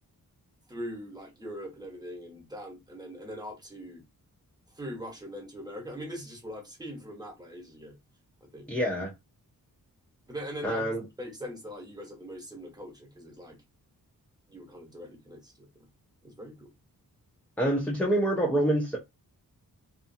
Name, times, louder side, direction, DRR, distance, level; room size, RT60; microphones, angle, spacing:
voice 1, 0.7-4.0 4.7-7.9 8.5-8.7 10.3-10.9 11.2-13.6 14.5-15.9 16.2-16.7, equal, 10° right, 0.9 m, -41 dB
voice 2, 8.7-9.1 10.6-11.0 17.6-19.0, right 1 dB, 5° left, 0.4 m, -26 dB
2.6 x 2.4 x 2.6 m
wide cardioid pair, 160°, 35 cm